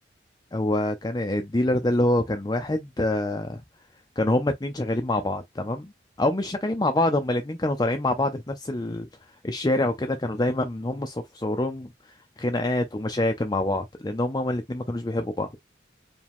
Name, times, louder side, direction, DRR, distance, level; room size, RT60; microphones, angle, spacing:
voice 1, 0.5-3.6 4.2-5.9 6.2-9.1 9.4-11.9 12.4-15.5, left 1 dB, 20° left, 0.5 m, -26 dB
4.9 x 2.3 x 3.5 m
head